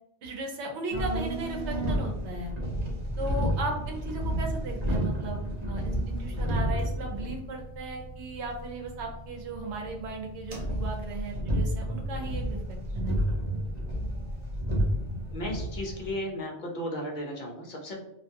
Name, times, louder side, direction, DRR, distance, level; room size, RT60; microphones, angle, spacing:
voice 1, 0.2-2.5 3.2-13.2, right 2 dB, 80° right, 0 dB, 0.9 m, -36 dB
sound 1, 0.9-16.1, equal, 45° right, 0.6 m, -31 dB
voice 2, 15.3-18.0, equal, 50° left, 0 dB, 0.6 m, -35 dB
2.4 x 2.2 x 2.8 m, 0.80 s
omnidirectional pair, 1.2 m